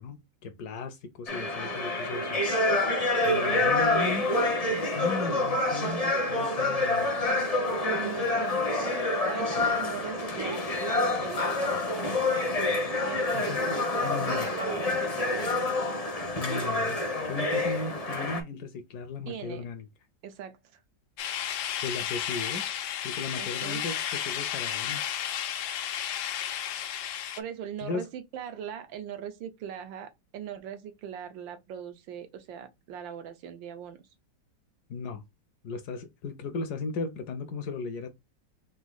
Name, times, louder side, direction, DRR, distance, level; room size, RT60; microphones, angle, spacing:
voice 1, 0.0-2.4 3.2-4.2 4.9-7.3 13.3-13.8 14.0-14.5 16.4-19.9 21.8-22.6 23.0-25.1 27.8-28.0 34.9-35.2 35.6-38.1, left 4 dB, 70° left, 1.0 m, -36 dB
sound 1, 1.3-18.4, left 2 dB, 40° left, 0.5 m, -27 dB
voice 2, 3.4-3.9 7.8-12.1 13.0-15.6 19.3-19.6 20.2-20.6 23.4-23.8 27.4-34.1, right 8 dB, 80° right, 1.5 m, -40 dB
sound 2, 21.2-27.4, left 10 dB, 90° left, 1.4 m, -33 dB
4.0 x 2.6 x 3.9 m
omnidirectional pair, 2.0 m